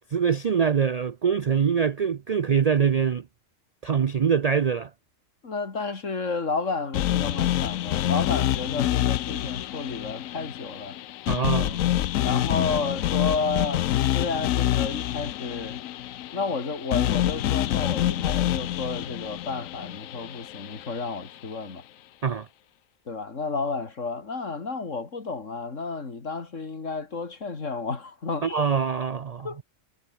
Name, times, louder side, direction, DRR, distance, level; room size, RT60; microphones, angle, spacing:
voice 1, 0.1-3.2 3.8-4.9 11.3-11.8 22.2-22.5 28.4-29.5, right 7 dB, 55° right, 0.4 m, -24 dB
voice 2, 5.4-11.0 12.2-15.8 16.3-21.8 23.1-28.7 29.4-29.6, left 4 dB, 70° left, 2.9 m, -31 dB
sound 1, 6.9-21.1, left 13 dB, 85° left, 1.1 m, -27 dB
omnidirectional pair, 1.3 m